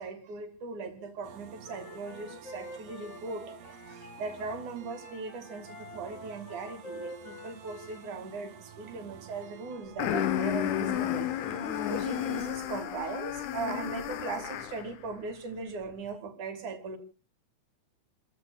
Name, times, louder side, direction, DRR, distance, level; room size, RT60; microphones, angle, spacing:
voice 1, 0.0-11.3 11.9-17.0, right 4 dB, 85° right, 8 dB, 3.7 m, -39 dB
sound 1, 1.2-12.5, right 7 dB, 60° right, 2.6 m, -50 dB
Wind instrument woodwind instrument, 1.6-4.6 4.9-8.1, left 1 dB, 55° left, 4.9 m, -47 dB
sound 2, 10.0-14.9, left 10 dB, 90° left, 2.5 m, -32 dB
29.0 x 15.5 x 2.3 m, 0.33 s
omnidirectional pair, 3.3 m